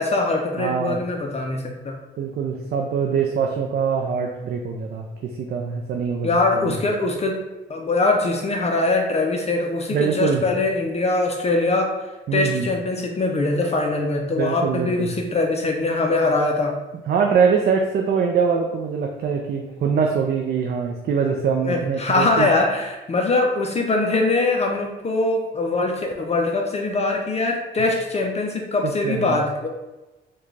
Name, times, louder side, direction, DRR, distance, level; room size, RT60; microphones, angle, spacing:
voice 1, 0.0-2.0 6.2-7.4 7.7-11.9 12.3-16.8 21.6-29.7, left 2 dB, 35° left, 2 dB, 0.5 m, -22 dB
voice 2, 0.6-1.0 2.2-6.3 9.9-10.4 12.3-12.7 14.4-15.1 17.1-22.5 28.8-29.4, right 6 dB, 55° right, 2 dB, 0.4 m, -23 dB
3.6 x 2.3 x 3.2 m, 1.1 s
cardioid pair, 90°, 20 cm